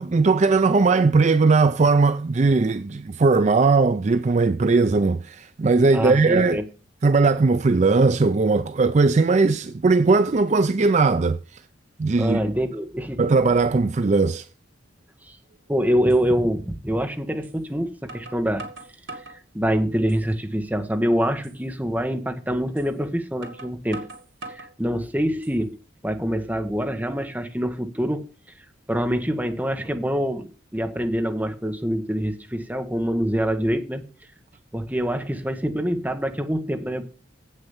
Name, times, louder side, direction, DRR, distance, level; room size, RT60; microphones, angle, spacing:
voice 1, 0.0-6.6 7.0-11.6 12.0-12.4 13.2-14.5, right 3 dB, 35° right, 0.4 m, -19 dB
voice 2, 5.9-6.6 12.2-13.2 13.5-13.6 15.3-15.4 15.7-18.7 19.2-19.3 19.5-24.1 24.5-25.8 26.0-28.2 28.9-34.0 34.7-37.0, equal, 10° right, 1.2 m, -25 dB
sound 1, 15.5-15.6 16.1-16.2 17.4-17.6 18.1-19.4 19.9-20.5 20.8-20.9 21.4-21.6 22.8-22.9 23.4-24.7 25.2-25.8, right 2 dB, 75° right, 2.9 m, -41 dB
8.2 x 6.7 x 7.1 m
head